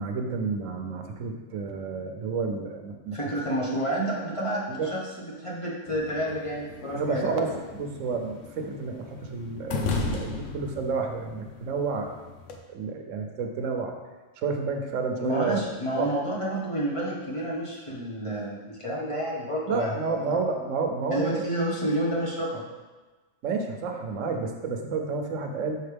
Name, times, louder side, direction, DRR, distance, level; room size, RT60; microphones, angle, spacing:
voice 1, 0.0-3.2 4.7-4.9 6.9-12.2 12.7-14.0 14.4-15.7 15.9-16.1 19.7-21.4 23.4-25.8, right 4 dB, 85° right, 4 dB, 1.1 m, -30 dB
voice 2, 3.1-5.0 5.4-7.3 15.2-20.4 21.1-22.6, right 1 dB, 25° left, -5 dB, 1.1 m, -29 dB
sound 1, 5.9-12.6, left 3 dB, 80° left, 1.0 m, -36 dB
6.6 x 4.8 x 3.4 m, 1.2 s
omnidirectional pair, 1.3 m